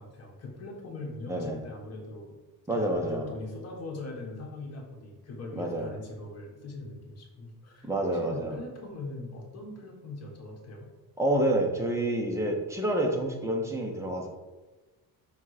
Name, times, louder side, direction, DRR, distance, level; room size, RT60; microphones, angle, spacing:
voice 1, 0.0-2.4 2.7-10.9, left 2 dB, 40° left, 0 dB, 1.5 m, -41 dB
voice 2, 1.3-1.6 2.7-3.3 5.6-5.9 7.8-8.6 11.2-14.3, right 1 dB, 10° right, 1 dB, 0.8 m, -28 dB
5.7 x 3.5 x 4.8 m, 1.2 s
cardioid pair, 150°, 38 cm